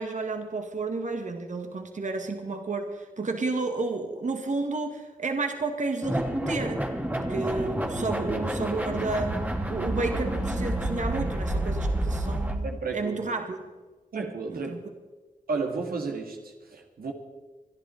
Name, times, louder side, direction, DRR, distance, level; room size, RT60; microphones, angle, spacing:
voice 1, 0.0-9.4 9.7-13.6 14.5-14.8, right 3 dB, 55° right, 5 dB, 1.8 m, -31 dB
sound 1, 6.0-12.6, right 1 dB, 10° right, 2.1 m, -29 dB
voice 2, 12.6-13.2 14.1-14.7 15.5-17.1, right 4 dB, 85° right, 1 dB, 1.8 m, -32 dB
25.5 x 11.0 x 4.3 m, 1.3 s
cardioid pair, 60°, 15 cm